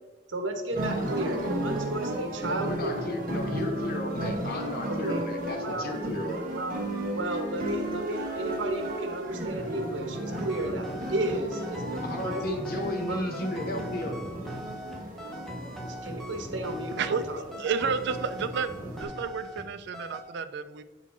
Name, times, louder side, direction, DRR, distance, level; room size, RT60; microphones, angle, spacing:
voice 1, 0.3-3.5 4.9-5.2 5.6-5.9 6.5-6.8 7.1-10.8 11.1-13.4 13.7-13.9 15.9-17.4, right 1 dB, 85° right, 5 dB, 1.0 m, -34 dB
sound 1, 0.7-19.0, right 1 dB, 50° right, 1.3 m, -34 dB
voice 2, 2.4-6.5 12.0-14.2, left 1 dB, 55° left, 4 dB, 0.8 m, -34 dB
sound 2, 10.3-19.7 19.9-20.2, equal, ahead, 0.9 m, -40 dB
voice 3, 16.9-20.8, right 5 dB, 65° right, 11 dB, 0.4 m, -31 dB
7.0 x 4.0 x 4.3 m, 1.2 s
head